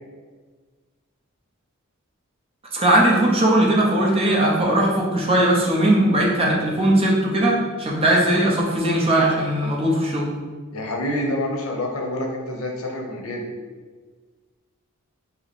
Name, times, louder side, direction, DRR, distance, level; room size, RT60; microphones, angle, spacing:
voice 1, 2.7-10.3, right 1 dB, 25° right, -3 dB, 0.7 m, -19 dB
voice 2, 10.7-13.5, left 1 dB, 85° left, 1 dB, 0.7 m, -27 dB
3.0 x 2.8 x 4.1 m, 1.4 s
head